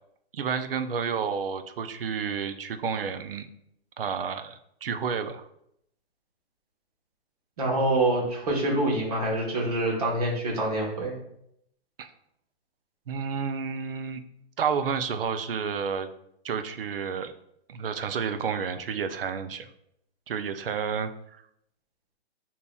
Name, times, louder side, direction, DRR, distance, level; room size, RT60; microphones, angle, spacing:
voice 1, 0.3-3.5 4.0-5.4 12.0-12.1 13.1-14.2 14.6-16.1 16.4-17.3 17.7-19.7 20.3-21.4, right 6 dB, 60° right, 9 dB, 0.5 m, -30 dB
voice 2, 7.6-11.1, right 1 dB, 35° right, -2 dB, 1.1 m, -26 dB
6.7 x 2.8 x 2.3 m, 0.75 s
hypercardioid pair, 175°, 33 cm